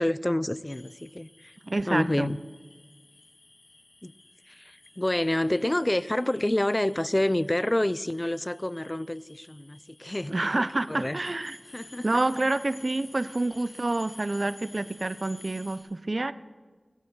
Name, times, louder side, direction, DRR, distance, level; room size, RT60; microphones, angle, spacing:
voice 1, 0.0-1.5 1.9-2.4 4.0-4.1 4.5-11.2 11.7-12.0, left 1 dB, 25° left, 18 dB, 0.4 m, -28 dB
sound 1, 0.7-15.8, left 2 dB, 90° left, 3.6 m, -52 dB
voice 2, 1.6-2.3 10.3-11.6 12.0-16.3, right 2 dB, 55° right, 15 dB, 0.5 m, -28 dB
17.5 x 12.0 x 6.9 m, 1.4 s
wide cardioid pair, 50°, 0 cm